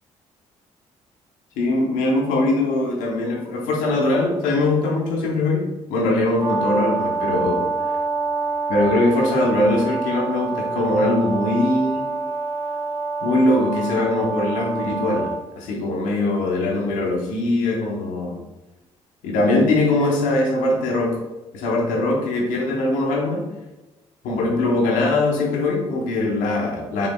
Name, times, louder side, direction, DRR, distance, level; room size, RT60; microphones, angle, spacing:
voice 1, 1.6-7.7 8.7-12.1 13.2-15.3 15.6-18.4 19.2-21.2 21.5-23.4 24.2-27.1, left 2 dB, 80° left, 0 dB, 0.9 m, -21 dB
Brass instrument, 6.4-15.4, right 4 dB, 50° right, 1.3 m, -26 dB
5.2 x 3.2 x 2.3 m, 1.0 s
supercardioid pair, 60°, 13 cm